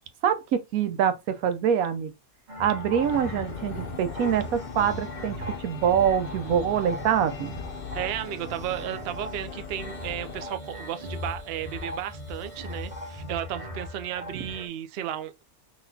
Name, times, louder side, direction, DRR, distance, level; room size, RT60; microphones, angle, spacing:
voice 1, 0.2-2.1 2.6-7.5 14.3-14.4, right 8 dB, 90° right, 1.1 m, -25 dB
sound 1, 2.5-14.7, left 1 dB, 30° right, 1.7 m, -39 dB
sound 2, 3.0-10.5, left 6 dB, 55° left, 0.5 m, -39 dB
voice 2, 7.9-15.4, right 11 dB, 65° right, 0.6 m, -34 dB
3.9 x 3.0 x 2.7 m
omnidirectional pair, 1.5 m